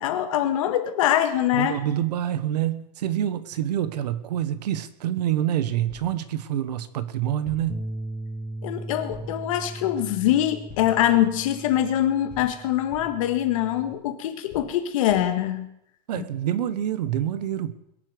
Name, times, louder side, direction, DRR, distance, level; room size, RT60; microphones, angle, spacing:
voice 1, 0.0-1.8 8.6-15.7 16.1-16.2, left 12 dB, 50° left, 1.7 m, -23 dB
voice 2, 1.5-7.8 16.1-17.7, right 11 dB, 70° right, 1.3 m, -27 dB
sound 1, 5.9-6.2 7.4-7.8 9.1-9.5 10.7-11.1 12.3-13.3 14.5-15.4, left 3 dB, 30° left, 3.1 m, -45 dB
Bass guitar, 7.7-13.9, right 1 dB, ahead, 0.5 m, -38 dB
22.0 x 7.4 x 6.8 m
supercardioid pair, 170°, 21 cm